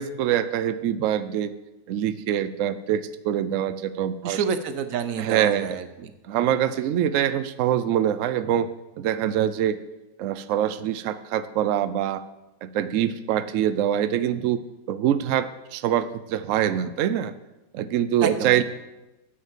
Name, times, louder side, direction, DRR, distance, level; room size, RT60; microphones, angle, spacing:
voice 1, 0.0-1.5 1.9-4.4 5.2-5.8 6.3-8.7 9.0-9.8 10.2-12.2 12.6-14.6 14.9-17.3 17.7-18.6, right 10 dB, 85° right, 13 dB, 0.6 m, -24 dB
voice 2, 4.2-6.1 18.2-18.6, right 6 dB, 60° right, 10 dB, 1.0 m, -28 dB
9.1 x 6.4 x 7.3 m, 1.0 s
omnidirectional pair, 1.9 m